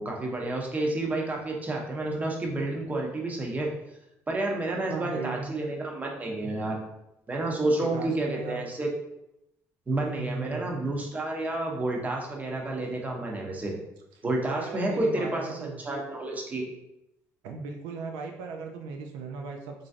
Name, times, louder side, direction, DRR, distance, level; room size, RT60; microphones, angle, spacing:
voice 1, 0.0-3.7 4.3-6.8 7.3-8.9 9.9-13.8 14.2-16.7, right 2 dB, 25° right, -1 dB, 0.8 m, -30 dB
voice 2, 4.9-5.5 7.8-8.6 10.2-10.7 14.4-15.8 17.4-19.9, right 4 dB, 85° right, 2 dB, 0.4 m, -37 dB
3.0 x 2.6 x 2.4 m, 0.85 s
supercardioid pair, 85°, 7 cm